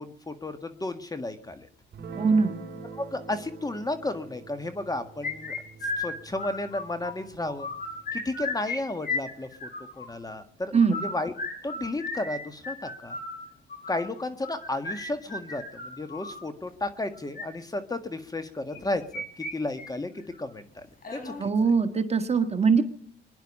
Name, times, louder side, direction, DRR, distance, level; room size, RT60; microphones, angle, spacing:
voice 1, 0.0-1.7 2.8-5.5 6.0-7.7 8.1-9.7 9.9-11.3 11.6-13.2 13.9-20.9 21.1-21.5, left 2 dB, 20° left, 9 dB, 1.8 m, -33 dB
Guitar, 1.9-8.5, right 4 dB, 60° right, 4.6 m, -45 dB
voice 2, 2.2-2.6 10.7-11.0 21.4-22.8, right 5 dB, 30° right, 7 dB, 1.6 m, -22 dB
sound 1, 5.2-7.1 7.5-8.8 9.0-10.1 10.7-16.4 17.1-17.4 18.7-19.5 19.8-19.9 20.3-20.4 21.0-21.4, left 3 dB, 45° left, 6.0 m, -34 dB
24.5 x 10.5 x 5.5 m, 0.63 s
cardioid pair, 90°, 20 cm